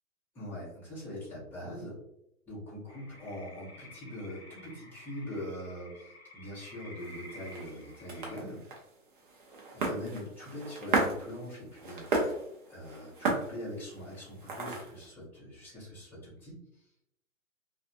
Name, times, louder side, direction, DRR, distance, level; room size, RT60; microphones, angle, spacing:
voice 1, 0.3-2.0 2.5-8.6 9.7-12.4 12.7-16.6, left 1 dB, 5° left, -10 dB, 0.8 m, -42 dB
sound 1, 2.9-8.4, left 1 dB, 50° left, 1.0 m, -52 dB
sound 2, 7.0-15.1, right 3 dB, 35° right, 0.6 m, -35 dB
2.5 x 2.3 x 2.5 m, 0.79 s
hypercardioid pair, 145°, 43 cm